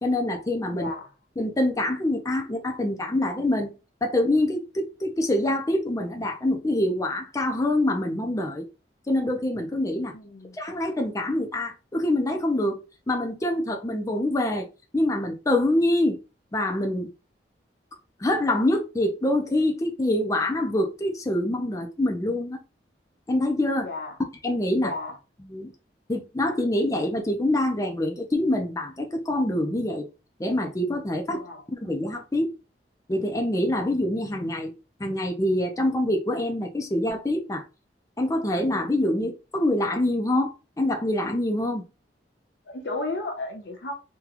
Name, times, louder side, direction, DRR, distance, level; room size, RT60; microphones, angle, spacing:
voice 1, 0.0-0.9 1.4-3.7 4.0-8.7 9.1-10.1 10.6-12.8 13.1-14.7 14.9-16.2 16.5-17.1 18.2-22.6 23.3-23.9 24.4-24.9 25.5-25.7 26.1-30.1 30.4-31.4 31.7-32.5 33.1-34.7 35.0-37.6 38.2-41.8, left 1 dB, 20° left, 0.5 m, -25 dB
voice 2, 0.7-1.1 10.1-10.6 23.8-24.2 24.8-25.2 31.3-31.6 42.7-43.9, left 2 dB, 75° left, 0.9 m, -33 dB
3.7 x 2.2 x 2.9 m
head